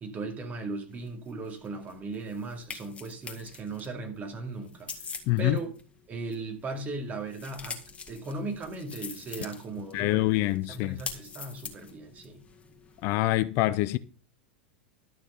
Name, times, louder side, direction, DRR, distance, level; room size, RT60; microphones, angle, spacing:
voice 1, 0.0-4.9 5.4-5.7 6.1-7.8 8.1-10.4 10.7-12.4, right 3 dB, 30° right, 2.4 m, -37 dB
sound 1, 0.9-13.4, left 5 dB, 20° left, 1.9 m, -45 dB
voice 2, 5.3-5.6 9.9-11.0 13.0-14.0, left 18 dB, 50° left, 0.5 m, -25 dB
12.0 x 6.2 x 5.4 m
hypercardioid pair, 95°, 6 cm